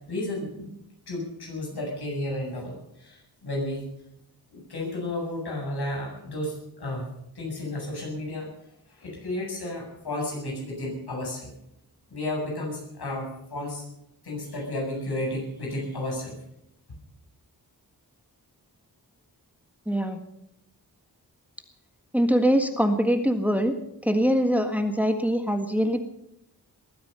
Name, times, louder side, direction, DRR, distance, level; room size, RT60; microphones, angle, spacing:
voice 1, 0.1-0.7 1.1-3.8 4.5-7.1 7.4-8.5 9.0-11.5 12.1-13.8 14.2-16.4, left 1 dB, 75° left, -1 dB, 7.7 m, -32 dB
voice 2, 19.9-20.2 22.1-23.7 24.0-26.0, equal, 5° right, 6 dB, 1.7 m, -23 dB
21.0 x 9.5 x 6.9 m, 0.81 s
cardioid pair, 60°, 39 cm